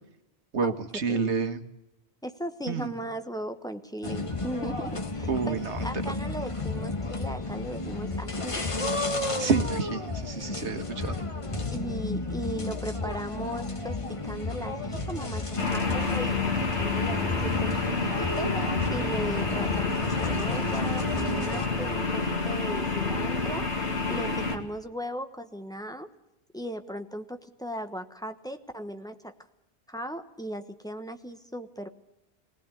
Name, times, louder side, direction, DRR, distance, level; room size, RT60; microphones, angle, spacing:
voice 1, 0.5-1.6 2.7-2.9 5.3-5.9 9.4-11.2, right 5 dB, 85° right, 8 dB, 1.7 m, -29 dB
voice 2, 2.2-8.6 11.7-17.8 18.2-18.5 18.9-23.7 24.1-26.1 26.5-29.3 29.9-31.9, equal, 5° left, 7 dB, 1.1 m, -37 dB
sound 1, 4.0-21.7, left 3 dB, 30° left, 1.4 m, -32 dB
sound 2, 15.6-24.6, left 3 dB, 90° left, 2.6 m, -28 dB
20.5 x 18.5 x 8.3 m, 0.89 s
omnidirectional pair, 1.1 m